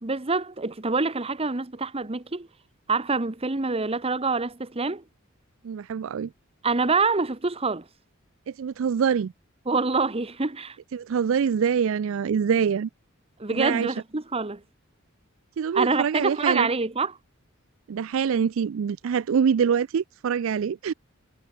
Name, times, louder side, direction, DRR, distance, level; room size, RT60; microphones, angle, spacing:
voice 1, 0.0-2.5 2.9-5.0 6.6-7.8 9.7-10.8 13.4-14.6 15.7-17.2, right 4 dB, 30° right, 1.1 m, -26 dB
voice 2, 5.6-6.3 8.5-9.3 10.9-12.9 13.5-13.9 15.6-16.7 17.9-20.9, right 7 dB, 65° right, 0.4 m, -25 dB
head